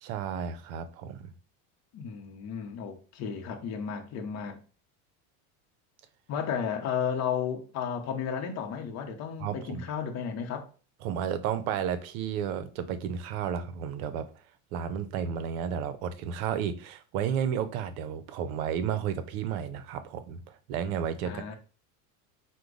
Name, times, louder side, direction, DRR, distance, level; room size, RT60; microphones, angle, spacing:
voice 1, 0.0-1.3 9.4-9.8 11.0-14.3 14.7-21.4, right 8 dB, 75° right, 0.7 m, -32 dB
voice 2, 1.9-4.6 6.3-10.7 21.2-21.6, left 7 dB, 40° left, 0.8 m, -33 dB
4.5 x 2.2 x 3.8 m
supercardioid pair, 120°, 43 cm